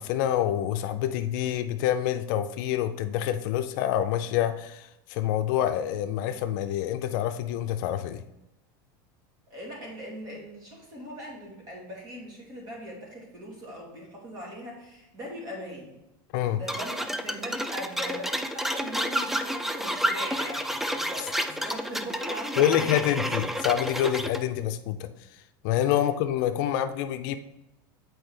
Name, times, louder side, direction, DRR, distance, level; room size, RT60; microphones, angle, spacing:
voice 1, 0.0-8.2 16.3-16.6 22.6-25.1 25.6-27.4, left 11 dB, 60° left, 9 dB, 0.5 m, -27 dB
voice 2, 9.5-15.9 16.5-23.1, equal, 40° right, -3 dB, 2.4 m, -40 dB
sound 1, 16.7-24.4, equal, ahead, 0.3 m, -30 dB
7.7 x 4.5 x 3.3 m, 0.90 s
supercardioid pair, 135°, 12 cm